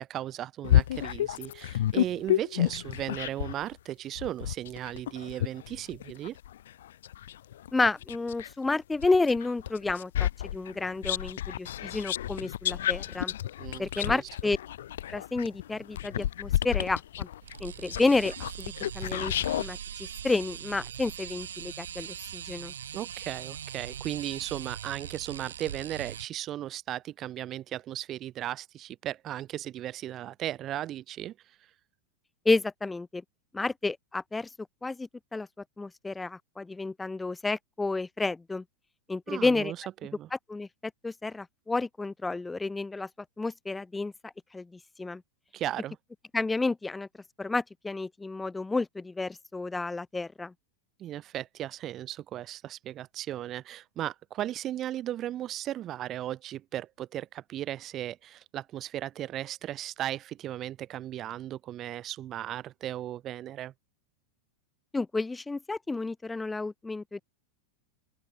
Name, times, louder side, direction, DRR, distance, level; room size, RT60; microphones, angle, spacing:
voice 1, 0.0-6.4 13.6-14.2 22.9-31.4 39.3-39.8 40.0-40.3 45.5-46.0 51.0-63.7, right 12 dB, 35° right, 3.4 m, -36 dB
sound 1, 0.6-3.6 4.2-8.5 9.0-19.7, left 12 dB, 75° left, 2.4 m, -30 dB
voice 2, 7.7-13.3 13.8-14.6 15.1-17.3 17.6-22.7 32.4-33.2 33.5-34.5 34.8-35.5 35.8-38.6 39.1-39.7 40.3-40.7 41.0-43.1 43.4-44.7 45.0-45.2 46.3-47.1 47.4-50.5 64.9-67.2, left 3 dB, 10° left, 2.5 m, -30 dB
sound 2, 17.4-26.3, right 9 dB, 85° right, 1.6 m, -41 dB
open air
hypercardioid pair, 110°, 0 cm